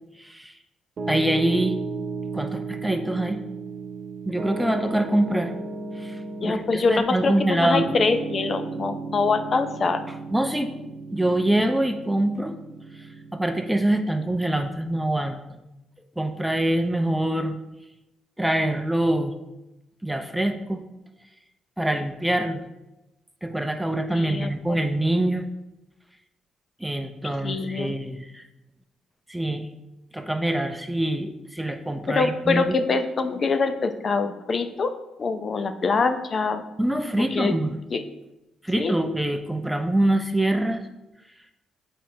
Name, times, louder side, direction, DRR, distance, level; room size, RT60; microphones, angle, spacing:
voice 1, 0.2-0.5 1.1-1.8 2.3-3.4 4.3-5.5 6.0-7.9 10.3-10.7 11.1-12.6 13.3-15.6 16.2-17.6 18.4-19.3 20.0-20.8 21.8-22.6 23.4-25.4 26.8-28.4 29.3-29.7 30.1-32.7 36.8-37.8 38.6-40.8, right 1 dB, 5° right, 6 dB, 0.6 m, -25 dB
Piano, 1.0-14.3, right 3 dB, 50° right, 0.7 m, -34 dB
voice 2, 6.4-10.0 24.1-24.8 27.4-27.9 32.1-34.9 35.2-36.6 37.3-37.5 37.9-38.0 38.8-38.9, left 4 dB, 45° left, 9 dB, 0.6 m, -24 dB
8.3 x 4.4 x 2.8 m, 0.95 s
cardioid pair, 90°, 0 cm